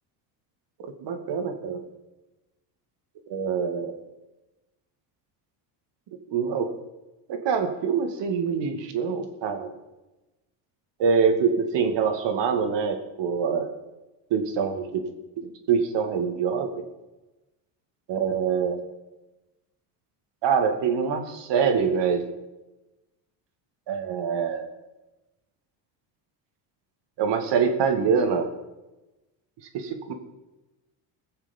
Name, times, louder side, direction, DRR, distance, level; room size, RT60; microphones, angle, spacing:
voice 1, 1.0-1.8 3.3-3.9 6.3-6.7 7.3-9.7 11.0-13.7 14.3-15.0 15.4-16.7 18.1-18.8 20.4-22.2 23.9-24.7 27.2-28.5 29.7-30.1, right 6 dB, 60° right, 6 dB, 2.2 m, -25 dB
17.5 x 7.3 x 7.2 m, 1.1 s
supercardioid pair, 100°, 48 cm